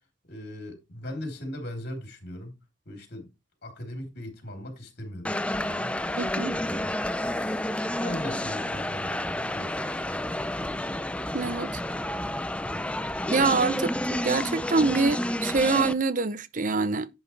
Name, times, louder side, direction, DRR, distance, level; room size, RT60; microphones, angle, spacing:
voice 1, 0.3-2.6 2.9-3.3 3.6-5.9 6.6-6.9 7.2-7.6 7.9-10.2, left 1 dB, 55° left, 3.6 m, -39 dB
sound 1, 5.2-15.9, left 1 dB, 5° left, 0.4 m, -30 dB
voice 2, 6.2-6.6 11.3-11.8 13.3-17.1, right 4 dB, 40° right, 0.6 m, -25 dB
11.0 x 8.1 x 3.3 m
head